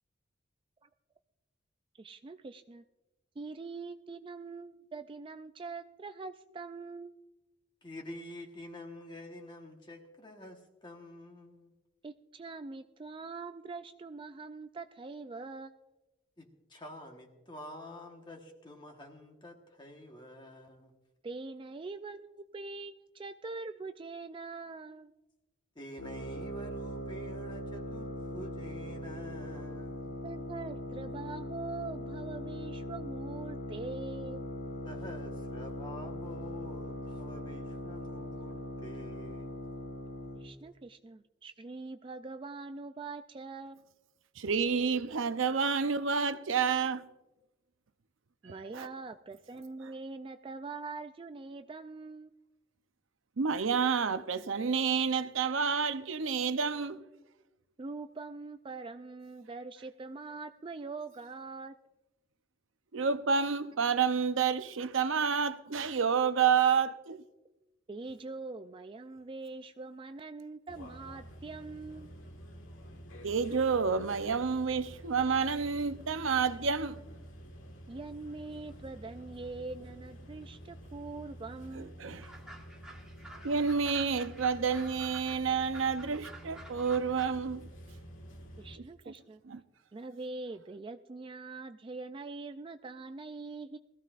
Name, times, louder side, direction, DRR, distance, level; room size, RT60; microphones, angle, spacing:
voice 1, 2.0-2.8 3.4-7.1 12.0-15.9 21.2-25.1 30.2-34.5 40.4-43.9 48.4-52.3 57.8-61.8 67.9-72.1 77.9-82.0 88.6-89.4 89.9-93.8, right 3 dB, 25° right, 0.3 m, -43 dB
voice 2, 7.8-11.7 16.4-20.9 25.7-30.1 34.8-39.6, left 1 dB, 25° left, 1.2 m, -48 dB
sound 1, 26.0-40.5, equal, 70° left, 1.3 m, -40 dB
voice 3, 44.4-47.0 48.4-48.9 53.4-57.0 62.9-67.2 73.2-77.0 81.8-82.3 83.4-87.7 89.1-89.2 89.5-89.6, right 6 dB, 85° right, 0.7 m, -29 dB
sound 2, 70.7-88.8, equal, 85° left, 1.6 m, -49 dB
sound 3, 82.2-87.3, right 2 dB, 5° right, 1.4 m, -50 dB
20.5 x 14.5 x 2.5 m
head